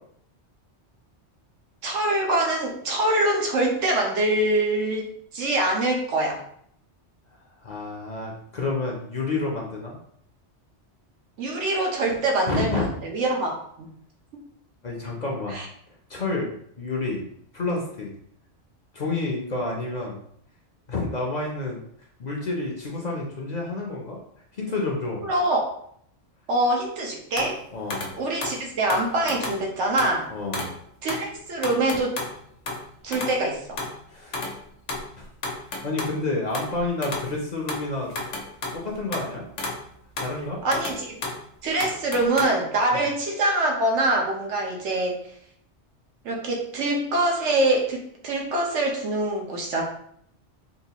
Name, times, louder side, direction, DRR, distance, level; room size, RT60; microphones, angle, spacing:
voice 1, 1.8-5.1 5.3-6.4 11.4-13.9 15.5-15.7 25.2-25.7 26.5-27.6 28.2-30.3 31.0-32.1 33.0-33.8 40.6-41.2 41.6-45.2 46.2-49.8, right 2 dB, 80° right, 0 dB, 1.1 m, -24 dB
voice 2, 7.6-9.9 12.5-12.9 14.8-15.6 16.1-17.2 17.5-18.1 18.9-20.2 20.9-21.8 22.2-24.2 24.5-25.3 27.7-28.1 30.3-30.7 34.1-34.5 35.1-35.3 35.8-38.1 38.7-39.5 40.2-40.6 42.9-43.1, left 2 dB, 45° left, -1 dB, 0.6 m, -29 dB
sound 1, 27.4-27.6 27.9-28.2 28.4-28.6 28.9-29.6 30.0-30.2 30.5-30.8 31.1-31.3 31.6-32.4 32.7-32.9 33.1-33.4 33.8-34.0 34.3-34.6 34.9-36.2 36.5-37.3 37.7-39.3 39.6-39.9 40.2-40.4 40.7-41.4 41.8-42.4, left 2 dB, 90° left, 1.0 m, -32 dB
3.8 x 2.4 x 2.8 m, 0.68 s
omnidirectional pair, 1.2 m